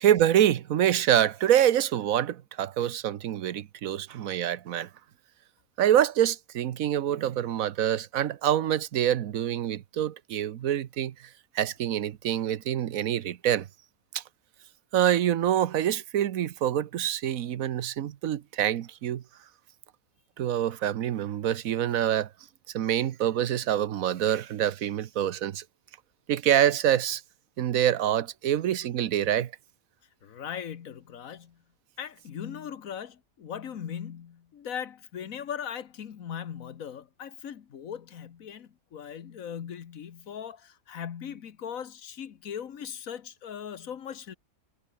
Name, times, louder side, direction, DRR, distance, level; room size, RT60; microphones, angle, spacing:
voice 1, 0.0-4.9 5.8-11.3 11.5-13.7 14.1-14.2 14.9-19.2 20.4-22.3 22.7-25.6 26.3-27.2 27.6-29.5, right 11 dB, 80° right, 1.3 m, -26 dB
voice 2, 30.2-31.6 32.0-44.4, left 8 dB, 80° left, 1.6 m, -39 dB
omnidirectional pair, 1.4 m